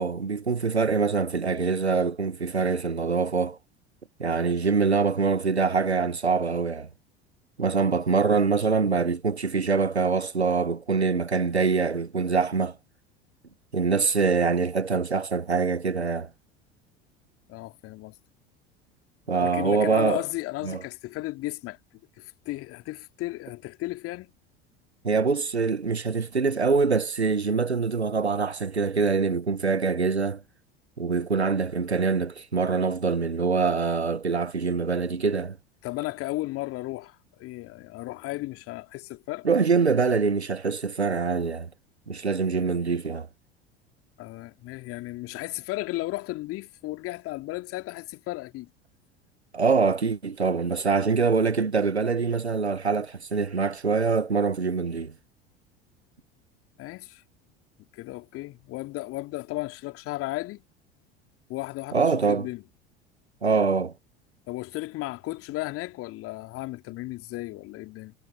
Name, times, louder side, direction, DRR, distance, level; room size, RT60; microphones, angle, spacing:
voice 1, 0.0-3.6 4.2-6.9 7.6-12.8 13.7-16.3 19.3-20.2 20.6-20.8 25.0-30.4 31.0-35.6 39.4-41.7 42.1-43.3 49.5-55.1 61.9-62.5 63.4-63.9, right 5 dB, 85° right, 1.5 m, -24 dB
voice 2, 17.5-18.1 19.4-21.8 22.2-24.3 35.8-39.5 44.2-48.7 56.8-57.2 57.9-60.6 61.5-62.6 64.5-68.1, left 18 dB, 45° left, 2.5 m, -34 dB
figure-of-eight pair, 70°, 32 cm